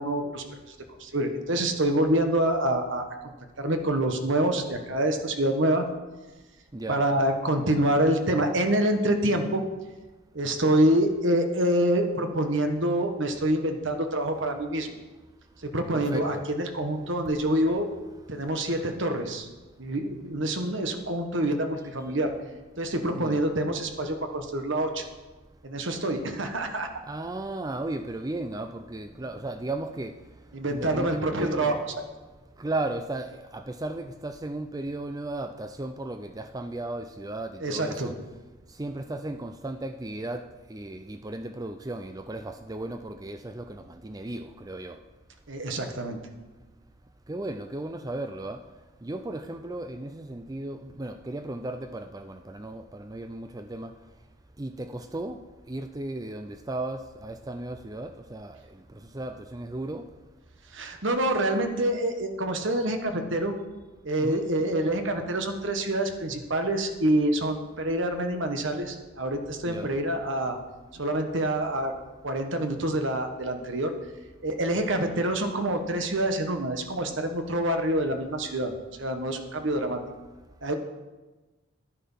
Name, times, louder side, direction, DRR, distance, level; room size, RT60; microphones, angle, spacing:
voice 1, 0.0-5.8 6.9-9.6 10.3-15.0 15.6-17.9 18.3-19.5 19.8-22.3 22.8-25.0 25.6-26.9 30.5-31.8 37.6-38.1 45.5-46.2 60.7-63.5 64.0-70.6 70.9-71.9 72.2-73.9 74.4-78.7 79.0-80.0 80.6-80.7, right 1 dB, 60° right, 5 dB, 1.3 m, -26 dB
voice 2, 15.9-16.5 23.1-23.4 27.1-30.1 30.7-31.8 32.6-38.2 38.8-40.4 40.7-45.0 47.3-48.6 49.0-53.9 54.6-55.4 55.7-58.6 59.1-60.0 64.2-64.4 69.6-69.9, right 2 dB, 15° right, 8 dB, 0.4 m, -35 dB
10.5 x 10.0 x 5.6 m, 1.2 s
head